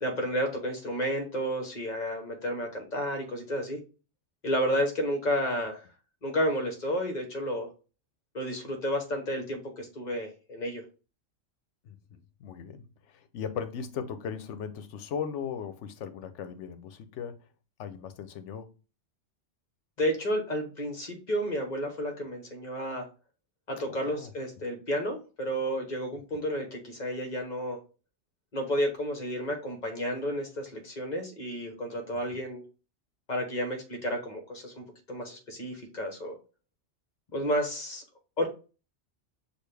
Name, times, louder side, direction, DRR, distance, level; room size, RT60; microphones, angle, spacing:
voice 1, 0.0-3.8 4.4-5.8 6.2-7.7 8.3-10.8 20.0-23.0 23.7-27.8 28.5-32.6 33.3-36.4 37.3-38.0 38.4-38.5, equal, 40° left, 1.1 m, -31 dB
voice 2, 11.8-17.4 17.8-18.7 23.9-24.3, left 7 dB, 75° left, 0.9 m, -38 dB
6.4 x 2.5 x 3.3 m
omnidirectional pair, 1.2 m